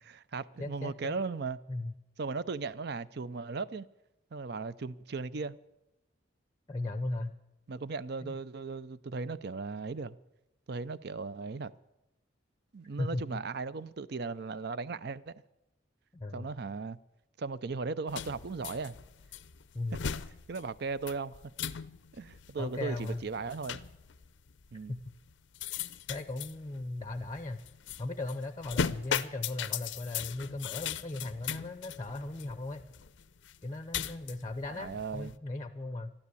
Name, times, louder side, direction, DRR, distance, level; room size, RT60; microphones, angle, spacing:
voice 1, 0.1-1.6 2.2-3.9 4.3-5.6 7.7-10.2 10.7-11.7 12.7-15.3 16.3-17.0 17.4-19.0 19.9-20.0 20.5-21.4 22.1-23.8 24.7-24.9 34.7-35.3, right 4 dB, 55° right, 0.5 m, -37 dB
voice 2, 0.6-1.2 1.7-1.9 6.7-7.3 8.2-8.3 13.0-13.2 16.1-16.5 19.7-20.0 22.5-23.2 24.9-25.1 26.1-27.6 28.0-32.9 33.6-36.1, left 2 dB, 20° left, 0.6 m, -37 dB
sound 1, 18.1-35.4, left 7 dB, 70° left, 0.5 m, -39 dB
13.0 x 12.5 x 8.3 m
head